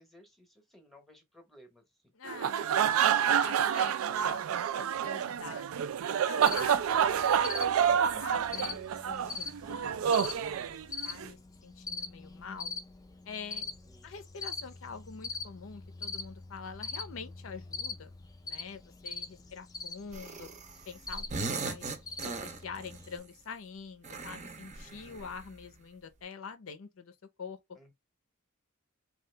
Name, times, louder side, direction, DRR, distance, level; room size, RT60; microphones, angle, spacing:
voice 1, 0.0-1.8 10.8-11.5 13.6-14.1 19.0-19.5 24.8-25.3 27.8-27.9, left 1 dB, ahead, 0.8 m, -60 dB
voice 2, 2.1-5.6 6.2-6.9 7.3-10.8 11.0-12.7 13.3-13.7 14.0-18.1 18.4-20.5 20.9-22.0 22.2-27.8, left 5 dB, 75° left, 0.5 m, -46 dB
sound 1, 2.3-11.3, right 8 dB, 85° right, 0.3 m, -28 dB
Cricket, 6.4-23.2, left 4 dB, 20° left, 0.4 m, -43 dB
sound 2, 20.1-20.8 21.1-23.0 24.0-25.5, right 4 dB, 35° right, 0.6 m, -39 dB
2.8 x 2.3 x 3.2 m
head